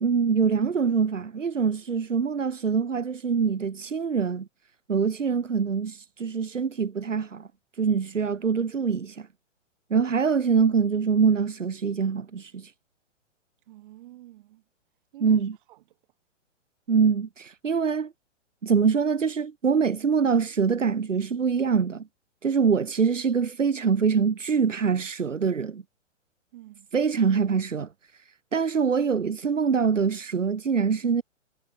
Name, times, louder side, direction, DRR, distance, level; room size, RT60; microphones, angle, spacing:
voice 1, 0.0-4.5 4.9-7.5 7.8-9.3 9.9-12.7 15.2-15.5 16.9-18.1 18.6-22.1 22.4-25.8 26.9-27.9 28.5-31.2, right 6 dB, 85° right, 0.9 m, -24 dB
voice 2, 13.7-14.6 15.1-16.0 26.5-26.9, right 15 dB, 40° right, 2.5 m, -49 dB
figure-of-eight pair, 115°, 37 cm